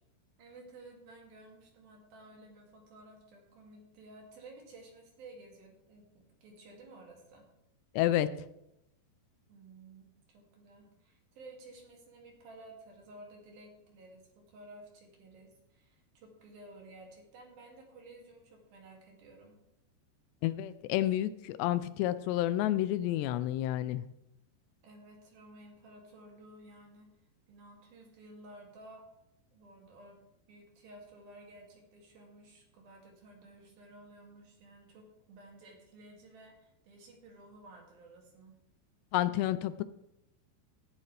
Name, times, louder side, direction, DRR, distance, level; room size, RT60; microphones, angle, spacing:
voice 1, 0.4-7.4 9.5-19.6 24.8-27.1 27.5-29.1 29.5-30.2 30.5-38.6, right 2 dB, 60° right, 0 dB, 4.1 m, -54 dB
voice 2, 8.0-8.3 20.4-24.0 39.1-39.8, left 13 dB, 85° left, 13 dB, 2.7 m, -30 dB
16.5 x 11.0 x 3.4 m, 0.83 s
omnidirectional pair, 5.0 m